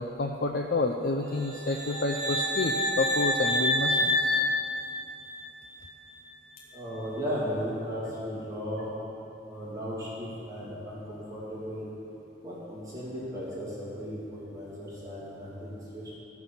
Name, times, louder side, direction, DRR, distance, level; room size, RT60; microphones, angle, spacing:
voice 1, 0.0-4.4, left 3 dB, 55° left, 3 dB, 0.5 m, -29 dB
sound 1, 1.4-5.4, left 1 dB, 65° right, 1.2 m, -28 dB
voice 2, 6.7-8.9 9.5-11.8 12.4-14.2 14.5-16.2, equal, 20° right, -8 dB, 2.5 m, -36 dB
13.0 x 6.0 x 7.2 m, 3.0 s
head